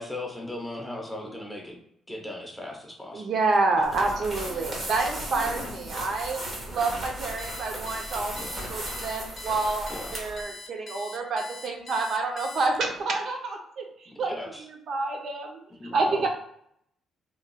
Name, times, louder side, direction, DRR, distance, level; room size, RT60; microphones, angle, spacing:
voice 1, 0.0-1.8 2.1-3.3 4.5-4.7 5.4-5.5 8.3-8.6 9.9-10.3 14.1-14.7 15.8-16.3, left 1 dB, 5° left, 1 dB, 0.7 m, -38 dB
voice 2, 3.1-6.4 6.7-8.4 8.7-14.3 14.9-15.6 15.9-16.3, right 3 dB, 65° right, 2 dB, 0.6 m, -28 dB
sound 1, 3.8-10.4, right 1 dB, 40° right, 1.1 m, -36 dB
Alarm, 7.4-13.0, left 3 dB, 45° left, 0.7 m, -43 dB
3.0 x 2.7 x 2.2 m, 0.72 s
cardioid pair, 90°, 0 cm